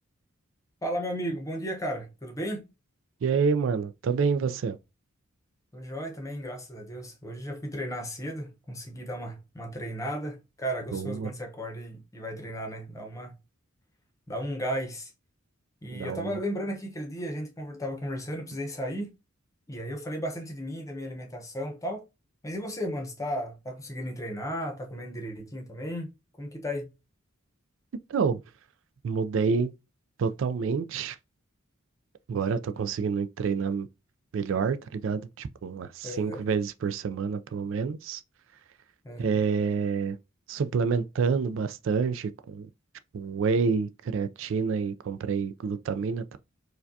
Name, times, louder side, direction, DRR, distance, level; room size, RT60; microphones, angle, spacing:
voice 1, 0.8-2.7 5.7-13.4 14.3-15.1 15.8-19.1 19.7-22.1 22.4-26.1 26.4-26.9 36.0-36.4 39.0-39.4, equal, 15° left, 0.7 m, -35 dB
voice 2, 3.2-4.8 10.9-11.3 15.9-16.4 28.1-28.4 29.0-29.7 30.2-31.2 32.3-33.9 34.3-38.2 39.2-40.2 40.5-42.7 43.1-46.4, right 5 dB, 70° right, 0.3 m, -28 dB
4.7 x 2.3 x 2.6 m
head